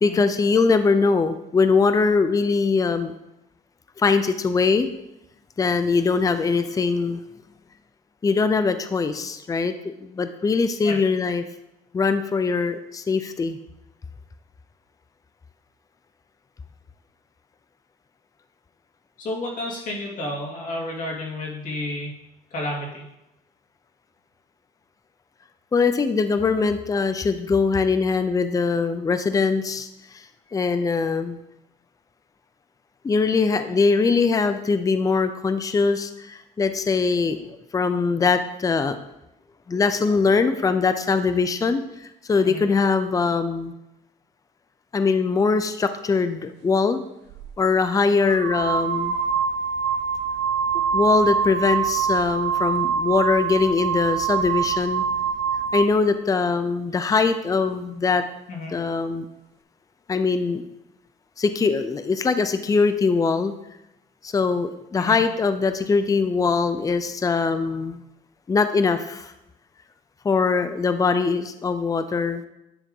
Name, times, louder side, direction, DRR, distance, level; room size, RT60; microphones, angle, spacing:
voice 1, 0.0-3.1 4.0-4.9 5.6-7.2 8.2-11.4 11.9-13.6 25.7-29.9 30.1-30.2 30.5-31.4 33.0-39.0 39.7-41.8 42.3-43.7 44.9-47.0 47.6-49.2 50.9-55.0 55.7-58.2 58.7-59.3 60.1-60.6 61.4-63.5 64.2-68.0 68.5-69.3 70.2-72.4, left 4 dB, 20° left, 10 dB, 0.5 m, -22 dB
voice 2, 19.2-22.1 22.5-23.0 42.4-42.6 58.5-58.7 65.0-65.2, left 1 dB, 50° left, -3 dB, 2.6 m, -31 dB
sound 1, 47.3-47.5 48.3-56.0, right 7 dB, 90° right, 0.6 m, -24 dB
10.0 x 3.6 x 5.4 m, 0.88 s
cardioid pair, 110°, 17 cm